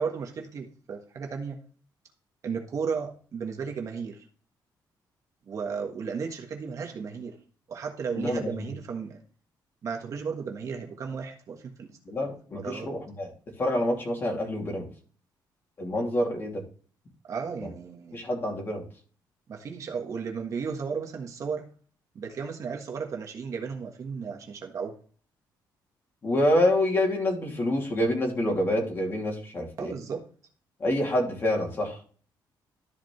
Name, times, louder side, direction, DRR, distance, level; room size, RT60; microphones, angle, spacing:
voice 1, 0.0-1.6 2.4-4.2 5.4-7.4 7.7-9.2 9.8-12.0 12.2-12.9 17.2-18.2 19.5-21.7 22.1-25.0 29.8-30.2, right 6 dB, 45° right, 1.5 m, -34 dB
voice 2, 8.2-8.7 12.1-13.3 13.6-14.9 15.8-16.6 18.1-18.8 26.2-29.9 30.8-32.0, left 1 dB, 30° left, 2.8 m, -27 dB
13.0 x 5.0 x 3.3 m
cardioid pair, 165°, 8 cm